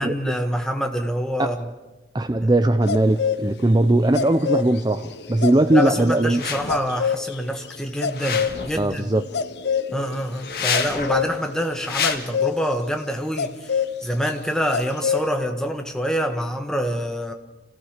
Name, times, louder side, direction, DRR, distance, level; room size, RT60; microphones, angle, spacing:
voice 1, 0.0-1.7 2.4-2.5 5.7-9.1 9.9-17.3, equal, 5° left, 4 dB, 1.5 m, -26 dB
voice 2, 2.1-6.4 8.8-9.2, right 1 dB, 25° right, 8 dB, 0.6 m, -19 dB
sound 1, 2.9-3.4 3.9-12.6 13.4-13.9 14.2-14.3 14.7-15.3, left 6 dB, 80° left, 0.8 m, -26 dB
sound 2, 6.3-6.8 8.0-8.8 10.3-11.2 11.8-12.2, left 6 dB, 60° left, 1.6 m, -27 dB
26.5 x 16.0 x 6.6 m, 1.1 s
head